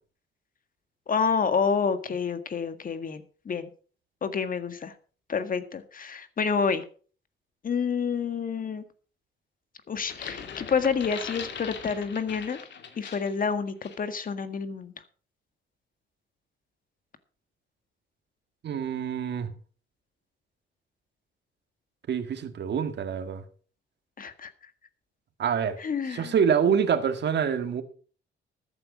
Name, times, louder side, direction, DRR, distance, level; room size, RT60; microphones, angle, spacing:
voice 1, 1.1-3.7 4.2-4.9 5.3-6.8 7.6-8.8 9.9-12.6 13.0-14.9 24.2-24.5 25.8-26.3, left 6 dB, 45° left, 1.7 m, -28 dB
sound 1, 9.9-13.4 13.8-14.0, left 6 dB, 60° left, 2.4 m, -40 dB
voice 2, 18.6-19.5 22.1-23.4 25.4-25.8 26.1-27.8, right 7 dB, 60° right, 1.9 m, -26 dB
14.0 x 9.7 x 5.1 m
cardioid pair, 90°, 20 cm